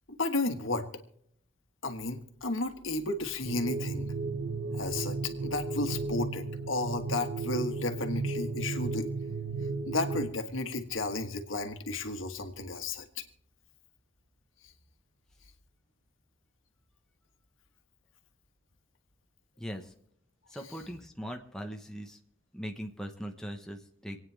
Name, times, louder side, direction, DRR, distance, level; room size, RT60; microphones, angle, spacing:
voice 1, 0.2-0.9 1.8-4.1 4.8-9.1 9.8-13.0 20.5-20.8, left 2 dB, 85° left, 7 dB, 1.6 m, -33 dB
sound 1, 3.5-10.3, right 3 dB, 80° right, 0.9 m, -34 dB
voice 2, 20.5-22.2 22.5-24.2, equal, 5° left, 3 dB, 1.1 m, -40 dB
27.0 x 9.3 x 3.4 m, 0.72 s
head